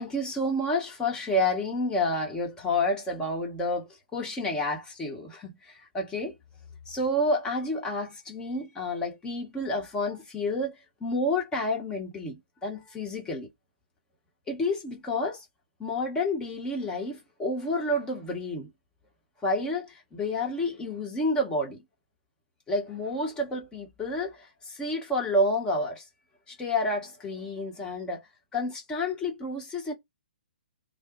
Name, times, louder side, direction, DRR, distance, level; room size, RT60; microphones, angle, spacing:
voice 1, 0.0-6.4 6.9-13.5 14.5-15.4 15.8-18.7 19.4-21.8 22.7-26.0 26.5-28.2 28.5-29.9, left 1 dB, 15° left, 1.2 m, -29 dB
3.3 x 2.1 x 3.1 m
figure-of-eight pair, 125°, 6 cm